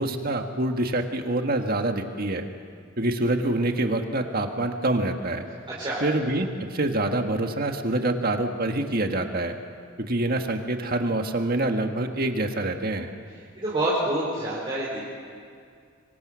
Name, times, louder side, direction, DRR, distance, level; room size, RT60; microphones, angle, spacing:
voice 1, 0.0-2.5 3.0-5.4 6.0-9.6 10.0-13.1, right 2 dB, 50° right, 5 dB, 1.7 m, -26 dB
voice 2, 13.6-15.0, right 1 dB, 25° right, -7 dB, 4.5 m, -27 dB
26.0 x 23.5 x 6.4 m, 2.2 s
head